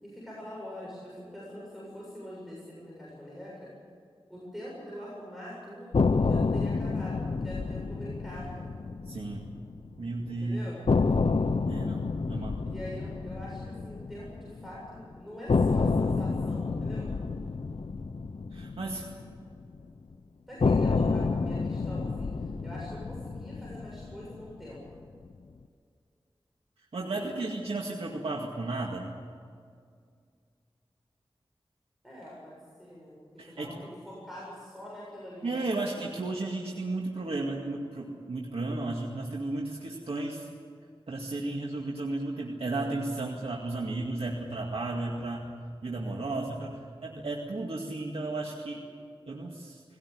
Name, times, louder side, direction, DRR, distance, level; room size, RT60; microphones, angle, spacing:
voice 1, 0.0-3.7 4.3-8.7 10.3-10.8 12.6-17.1 20.5-24.8 27.1-27.3 32.0-35.7, equal, ahead, -5 dB, 7.6 m, -44 dB
sound 1, 5.9-10.0 10.3-10.4 10.9-14.9 15.5-19.8 20.6-25.0, left 4 dB, 75° left, 0.8 m, -29 dB
voice 2, 9.1-9.6 10.0-10.7 11.7-12.6 18.5-19.1 26.9-29.1 33.4-33.7 35.4-40.5 41.1-45.5 45.8-48.8 49.3-49.8, right 2 dB, 85° right, -1 dB, 2.1 m, -34 dB
20.5 x 18.0 x 9.9 m, 2.2 s
wide cardioid pair, 60°, 10 cm